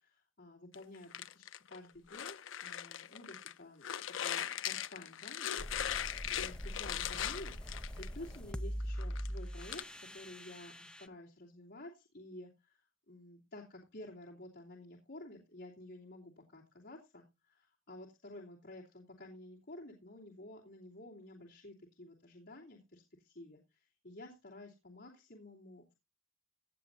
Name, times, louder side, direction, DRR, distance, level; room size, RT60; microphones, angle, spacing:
voice 1, 0.0-3.9 4.2-25.9, left 1 dB, 60° left, -4 dB, 2.9 m, -52 dB
sound 1, 0.7-3.5 3.8-8.4 8.8-9.8, left 10 dB, 75° left, 0.5 m, -39 dB
sound 2, 5.6-11.1, equal, 5° left, 0.5 m, -43 dB
17.5 x 8.3 x 2.6 m, 0.25 s
head